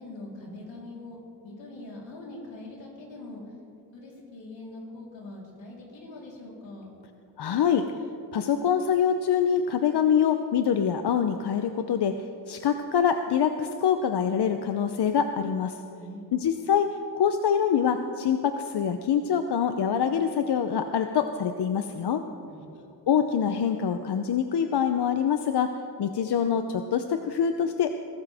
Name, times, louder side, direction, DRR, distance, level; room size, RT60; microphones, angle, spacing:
voice 1, 0.0-3.4 3.9-6.9 15.9-16.2 22.2-22.7, left 2 dB, 85° left, -3 dB, 3.9 m, -43 dB
voice 2, 7.4-7.9 8.3-15.8 16.3-22.2 23.1-25.7 26.0-28.0, left 8 dB, 65° left, 7 dB, 0.8 m, -25 dB
22.5 x 13.0 x 3.5 m, 2.7 s
cardioid pair, 80°, 44 cm